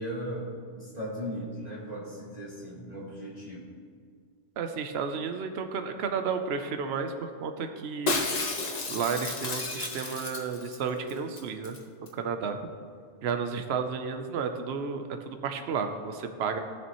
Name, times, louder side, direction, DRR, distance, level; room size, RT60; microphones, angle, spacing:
voice 1, 0.0-3.6, equal, 35° right, -6 dB, 1.8 m, -37 dB
voice 2, 4.6-8.2 8.9-11.8 12.1-12.6 13.2-16.6, right 6 dB, 65° right, 7 dB, 0.9 m, -32 dB
Shatter, 8.1-10.8 11.1-11.2 11.4-11.8 12.1-12.2, left 3 dB, 40° left, 0.9 m, -32 dB
17.0 x 7.0 x 3.0 m, 2.1 s
omnidirectional pair, 1.2 m